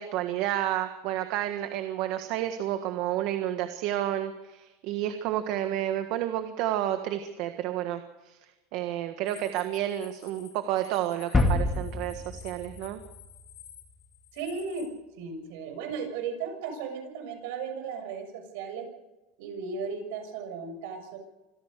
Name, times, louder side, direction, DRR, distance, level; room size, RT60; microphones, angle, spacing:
voice 1, 0.0-8.4 8.7-13.0, right 12 dB, 50° right, 8 dB, 1.5 m, -30 dB
sound 1, 9.3-14.9, left 11 dB, 85° left, 4.5 m, -52 dB
sound 2, 11.3-14.0, left 2 dB, 10° left, 2.4 m, -28 dB
voice 2, 14.3-14.9 15.2-18.9 19.4-21.2, right 5 dB, 70° right, 6 dB, 6.9 m, -35 dB
26.0 x 15.5 x 6.7 m, 1.0 s
supercardioid pair, 165°, 0 cm